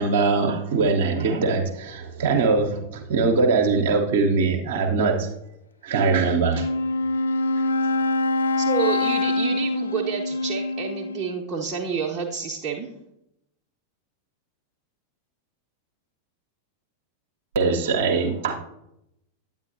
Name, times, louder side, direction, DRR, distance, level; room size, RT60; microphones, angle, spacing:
voice 1, 0.0-5.3 5.8-6.7 17.5-18.5, right 4 dB, 55° right, 1 dB, 0.8 m, -22 dB
Wind instrument woodwind instrument, 6.4-11.4, left 2 dB, 70° left, 0.3 m, -24 dB
voice 2, 8.6-12.9, right 6 dB, 25° right, -3 dB, 0.8 m, -29 dB
8.9 x 8.9 x 2.6 m, 0.81 s
figure-of-eight pair, 90°, 0 cm